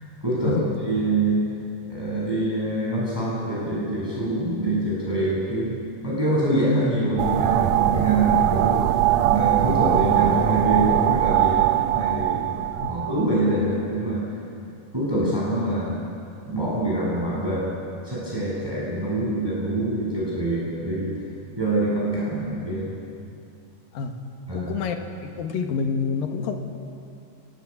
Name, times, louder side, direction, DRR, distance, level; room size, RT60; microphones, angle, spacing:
voice 1, 0.2-0.5 0.8-1.4 1.8-5.8 6.0-8.7 9.2-12.4 12.9-14.2 14.9-16.0 16.5-17.7 18.0-21.2 21.5-23.0 24.5-24.7, right 1 dB, 5° right, -6 dB, 7.0 m, -25 dB
sound 1, 7.2-13.6, right 13 dB, 85° right, 1.5 m, -21 dB
voice 2, 24.5-25.0 25.2-26.6, left 5 dB, 85° left, 4 dB, 3.4 m, -27 dB
26.5 x 20.0 x 8.6 m, 2.5 s
omnidirectional pair, 4.0 m